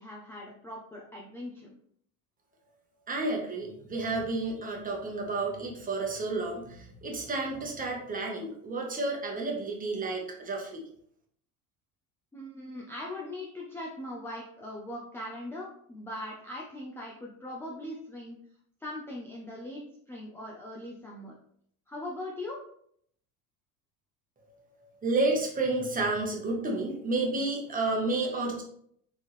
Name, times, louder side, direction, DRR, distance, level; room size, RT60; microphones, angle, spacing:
voice 1, 0.0-1.7 12.3-18.4 18.8-21.4 21.9-22.6, left 1 dB, 5° left, -3 dB, 0.5 m, -40 dB
voice 2, 3.1-10.8 25.0-28.6, right 2 dB, 20° right, 0 dB, 1.0 m, -31 dB
4.6 x 3.5 x 3.1 m, 0.66 s
cardioid pair, 135°, 40 cm